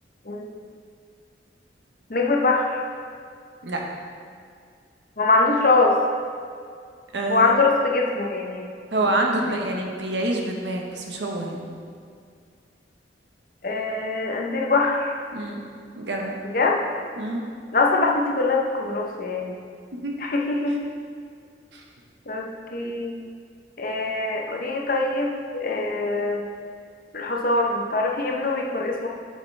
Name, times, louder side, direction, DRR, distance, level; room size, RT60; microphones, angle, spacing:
voice 1, 0.2-0.6 2.1-2.8 5.2-6.0 7.3-8.7 13.6-15.2 16.4-16.8 17.7-19.6 20.2-20.8 22.3-23.2 23.8-26.5 27.1-29.1, left 3 dB, 50° left, 0 dB, 0.8 m, -23 dB
voice 2, 7.1-7.5 8.9-11.6 15.3-15.6 15.9-16.4 17.2-17.4 20.0-20.1 21.7-21.8, right 1 dB, 75° right, 0 dB, 1.1 m, -26 dB
8.1 x 6.6 x 3.3 m, 2.2 s
head